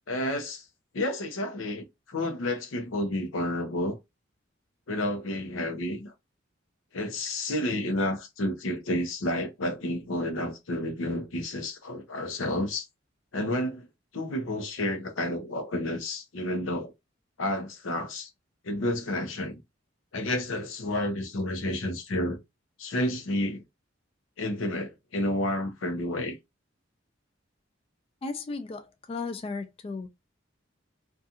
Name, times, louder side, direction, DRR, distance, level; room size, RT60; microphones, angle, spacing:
voice 1, 0.1-0.6 0.9-4.0 4.9-6.1 6.9-12.9 13.3-13.9 14.1-16.9 17.4-18.3 18.6-19.6 20.1-22.4 22.8-23.6 24.4-26.4, left 1 dB, 90° left, 0.6 m, -30 dB
voice 2, 28.2-30.1, left 3 dB, 30° left, 0.3 m, -35 dB
2.4 x 2.3 x 2.7 m
head